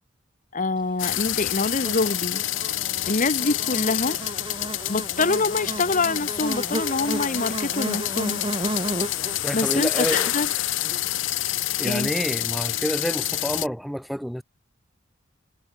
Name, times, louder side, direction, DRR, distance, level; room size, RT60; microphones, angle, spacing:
voice 1, 0.5-2.4 3.1-4.2 4.9-8.4 9.5-10.5 11.8-12.1, left 3 dB, 40° left, 1.3 m, -25 dB
sound 1, 1.0-13.7, left 14 dB, 75° left, 0.8 m, -28 dB
Buzz, 1.1-11.5, right 1 dB, 25° right, 4.5 m, -34 dB
voice 2, 9.4-10.3 11.8-14.4, equal, ahead, 3.3 m, -28 dB
head